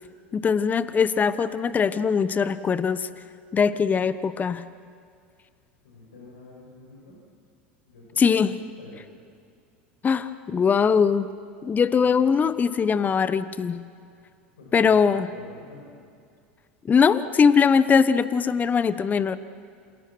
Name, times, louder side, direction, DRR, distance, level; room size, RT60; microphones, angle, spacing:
voice 1, 0.3-3.1 3.5-4.6 8.2-8.5 10.0-11.3 11.6-13.8 14.7-15.3 16.8-19.4, left 6 dB, 25° left, 14 dB, 1.1 m, -21 dB
voice 2, 5.8-7.2 7.9-8.4 8.8-9.1 12.0-12.4 14.6-16.1, left 2 dB, 85° left, -4 dB, 7.7 m, -47 dB
28.0 x 27.5 x 6.2 m, 2.3 s
hypercardioid pair, 85°, 6 cm